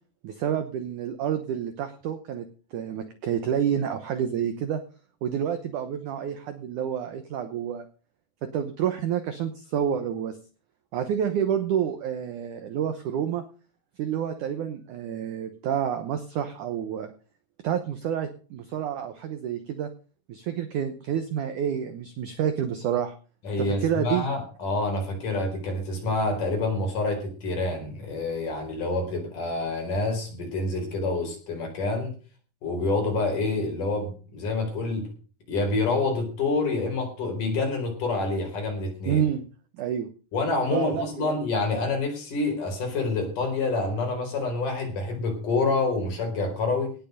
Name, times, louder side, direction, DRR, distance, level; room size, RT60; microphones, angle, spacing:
voice 1, 0.2-2.5 2.7-4.8 5.2-7.9 8.4-10.4 10.9-13.4 14.0-17.1 17.6-19.9 20.3-23.1 23.6-24.3 39.0-39.4 39.8-40.1 40.7-41.4, right 9 dB, 70° right, 9 dB, 1.9 m, -28 dB
voice 2, 23.5-32.1 32.6-35.1 35.5-39.2 40.3-47.0, left 3 dB, 50° left, 3 dB, 5.7 m, -27 dB
18.0 x 7.1 x 6.6 m, 0.38 s
omnidirectional pair, 4.9 m